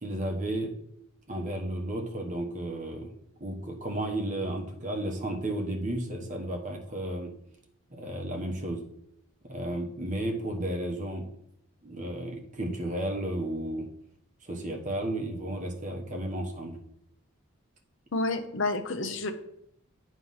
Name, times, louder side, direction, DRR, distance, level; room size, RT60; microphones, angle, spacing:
voice 1, 0.0-0.7 1.3-3.1 3.4-7.3 7.9-8.8 9.4-11.2 11.8-13.9 14.4-16.8, right 1 dB, 35° right, 1 dB, 1.0 m, -33 dB
voice 2, 18.1-19.3, left 2 dB, 60° left, 6 dB, 0.7 m, -29 dB
9.0 x 3.1 x 5.5 m, 0.75 s
head